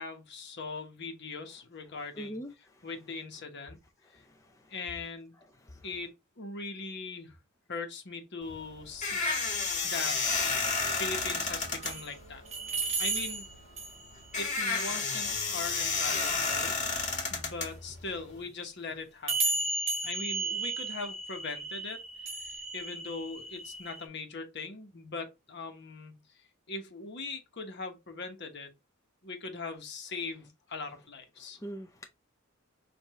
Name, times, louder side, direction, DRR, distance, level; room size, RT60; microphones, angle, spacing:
voice 1, 0.0-2.4 2.8-3.8 4.1-4.2 4.7-5.4 5.8-7.4 7.7-10.3 10.9-12.4 13.0-13.5 14.3-16.7 17.3-19.7 20.0-22.0 22.4-28.7 29.2-31.6, left 4 dB, 55° left, 1.2 m, -40 dB
voice 2, 2.2-2.9 4.1-4.7 5.6-5.9 31.6-32.1, equal, 15° left, 0.5 m, -43 dB
sound 1, 8.4-18.4, left 4 dB, 35° left, 1.6 m, -31 dB
sound 2, 10.7-12.1 12.5-14.2 17.9-18.0 19.3-24.1, right 3 dB, 30° right, 1.3 m, -34 dB
6.5 x 2.6 x 3.1 m
head